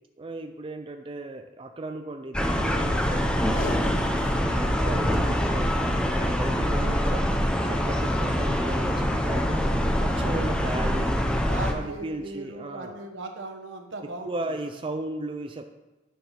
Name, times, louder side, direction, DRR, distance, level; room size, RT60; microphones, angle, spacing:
voice 1, 0.2-4.3 4.6-7.3 7.6-9.5 9.9-11.2 11.7-13.0 14.0-15.6, right 2 dB, 30° right, 6 dB, 0.4 m, -36 dB
sound 1, 2.3-11.7, equal, 5° left, 0.8 m, -24 dB
Packing tape duct tape, 3.4-4.5 4.9-5.0 5.1-5.2 5.8-6.1 7.1-7.4 7.9-8.0, left 3 dB, 50° left, 0.6 m, -38 dB
voice 2, 11.4-14.3, right 2 dB, 75° right, 4 dB, 1.2 m, -38 dB
9.6 x 4.9 x 5.8 m, 1.1 s
head